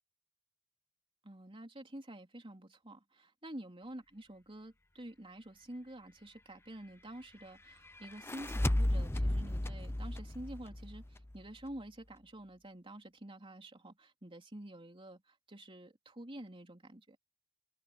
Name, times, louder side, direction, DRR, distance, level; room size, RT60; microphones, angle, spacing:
voice 1, 1.2-17.2, right 1 dB, 25° right, 3.4 m, -49 dB
sound 1, 8.0-11.4, left 1 dB, 10° left, 0.6 m, -34 dB
head